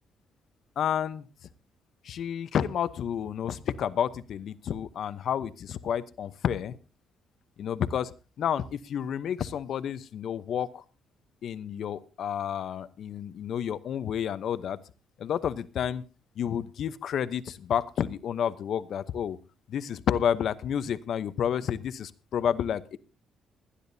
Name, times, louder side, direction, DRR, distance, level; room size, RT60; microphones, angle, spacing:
voice 1, 0.8-1.3 2.0-6.8 7.6-8.1 8.4-10.8 11.4-14.8 15.2-16.0 16.4-19.4 19.7-23.0, left 9 dB, 65° left, 14 dB, 0.8 m, -30 dB
29.5 x 10.0 x 2.7 m, 0.32 s
cardioid pair, 90°, 0 cm